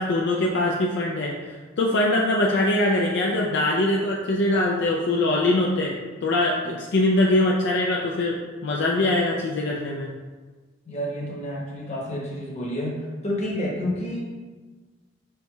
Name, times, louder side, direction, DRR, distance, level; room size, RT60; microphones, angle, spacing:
voice 1, 0.0-10.1, left 1 dB, 60° left, -2 dB, 0.4 m, -23 dB
voice 2, 10.8-14.2, equal, 35° left, -3 dB, 1.0 m, -29 dB
5.2 x 4.5 x 2.3 m, 1.4 s
head